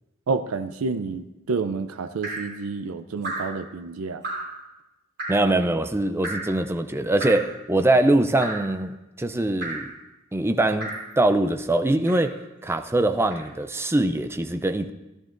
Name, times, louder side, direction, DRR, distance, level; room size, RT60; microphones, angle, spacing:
voice 1, 0.3-4.2, right 4 dB, 70° right, 9 dB, 0.5 m, -29 dB
Drip, 2.2-2.6 3.2-3.6 4.2-4.6 5.2-5.5 6.2-6.6 7.2-7.6 8.4-8.7 9.6-9.9 10.8-11.1 12.0-12.4 13.3-13.5, right 2 dB, 50° right, 3.5 m, -33 dB
voice 2, 5.3-9.9 10.3-12.4 12.6-14.9, right 2 dB, 10° right, 8 dB, 0.4 m, -23 dB
16.5 x 11.0 x 2.6 m, 1.0 s
head